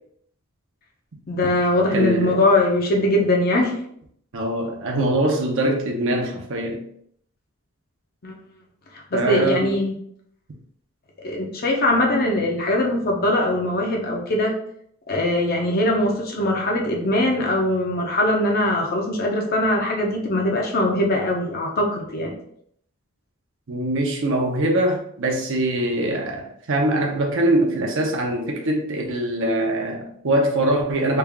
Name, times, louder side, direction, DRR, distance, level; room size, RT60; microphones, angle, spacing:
voice 1, 1.3-3.7 8.2-8.3 9.1-9.9 11.2-14.5 15.1-22.3, left 1 dB, 45° left, 0 dB, 0.6 m, -21 dB
voice 2, 1.9-2.4 4.3-6.8 9.1-9.7 23.7-31.2, right 1 dB, 65° right, 1 dB, 0.7 m, -23 dB
3.3 x 2.3 x 3.5 m, 0.67 s
head